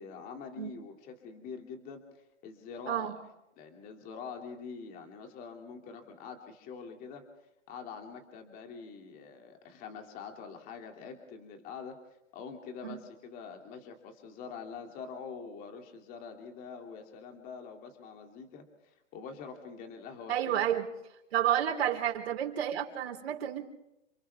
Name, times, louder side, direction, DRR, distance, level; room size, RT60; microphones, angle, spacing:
voice 1, 0.0-3.1 3.6-7.2 7.7-12.0 12.3-20.7, left 5 dB, 25° left, 2.7 m, -45 dB
voice 2, 2.9-3.2 12.8-13.0 20.3-20.9 21.3-23.7, right 10 dB, 55° right, 4.1 m, -30 dB
29.0 x 27.0 x 3.6 m
hypercardioid pair, 155°, 36 cm